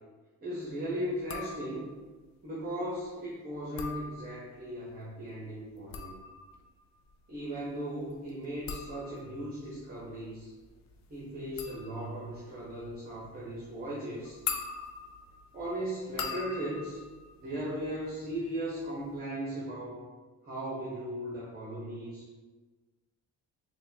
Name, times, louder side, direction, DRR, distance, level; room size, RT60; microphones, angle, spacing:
voice 1, 0.4-2.0 2.4-6.1 7.3-10.5 11.1-14.4 15.5-17.0 17.4-20.0 20.4-22.3, right 1 dB, 25° right, -7 dB, 1.0 m, -37 dB
sound 1, 1.2-2.0 3.6-4.7 5.7-18.4 18.7-19.2, left 6 dB, 50° left, 0.5 m, -43 dB
3.9 x 2.3 x 2.7 m, 1.3 s
supercardioid pair, 70°, 36 cm